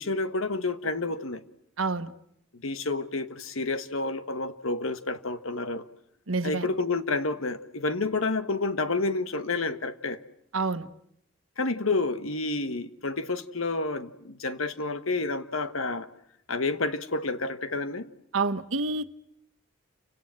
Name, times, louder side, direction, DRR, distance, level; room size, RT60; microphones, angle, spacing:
voice 1, 0.0-1.4 2.5-5.8 6.4-10.2 11.6-16.1 16.5-18.1, left 3 dB, 85° left, 1.5 m, -29 dB
voice 2, 1.8-2.1 6.3-6.7 10.5-10.9 18.3-19.1, right 3 dB, 80° right, 1.3 m, -28 dB
29.5 x 25.5 x 7.7 m
head